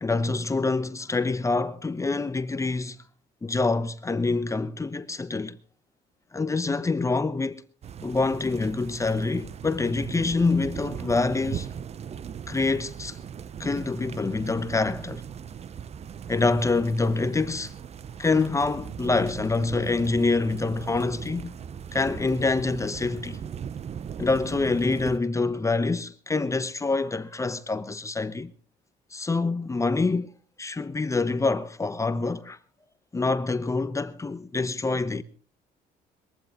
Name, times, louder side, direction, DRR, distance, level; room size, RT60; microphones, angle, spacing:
voice 1, 0.0-3.0 3.4-5.6 6.3-7.6 8.0-11.7 12.5-13.2 13.6-15.2 16.3-17.7 18.2-21.5 21.9-23.4 24.2-28.5 29.1-30.3 30.6-32.6 33.1-35.2, left 3 dB, 20° left, 1.0 m, -26 dB
sound 1, 7.8-25.2, right 8 dB, 40° right, 0.7 m, -38 dB
22.0 x 14.5 x 3.6 m
cardioid pair, 110°, 17 cm